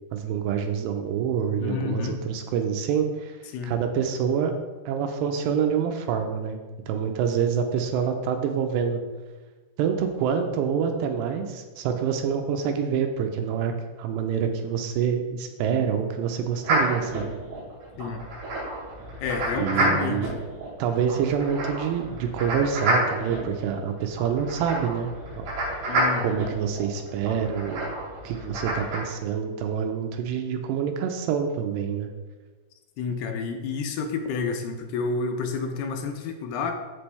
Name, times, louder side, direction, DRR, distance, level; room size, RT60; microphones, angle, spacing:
voice 1, 0.1-3.4 3.6-4.5 4.9-6.6 6.9-9.0 9.8-17.3 19.6-20.4 20.8-25.5 26.2-27.9 28.2-32.1, right 7 dB, 85° right, 5 dB, 2.7 m, -26 dB
voice 2, 1.6-2.2 3.5-3.7 18.0-18.2 19.2-20.3 25.9-26.4 33.0-36.7, left 5 dB, 80° left, 5 dB, 2.6 m, -30 dB
sound 1, 16.6-29.0, right 1 dB, 55° right, 4.8 m, -29 dB
15.0 x 5.3 x 3.4 m, 1.3 s
omnidirectional pair, 5.2 m